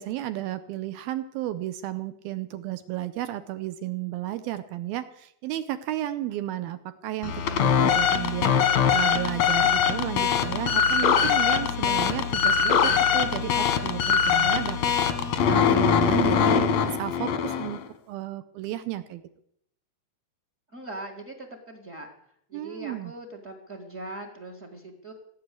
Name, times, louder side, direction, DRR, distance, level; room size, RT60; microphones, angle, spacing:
voice 1, 0.0-14.8 15.2-17.8 18.1-19.2 22.5-23.1, right 14 dB, 80° right, 11 dB, 2.2 m, -33 dB
sound 1, 7.2-17.8, left 7 dB, 70° left, 1.6 m, -22 dB
voice 2, 20.7-22.1 22.5-25.1, right 2 dB, 50° right, 4 dB, 0.9 m, -40 dB
17.0 x 9.1 x 8.3 m, 0.70 s
omnidirectional pair, 4.9 m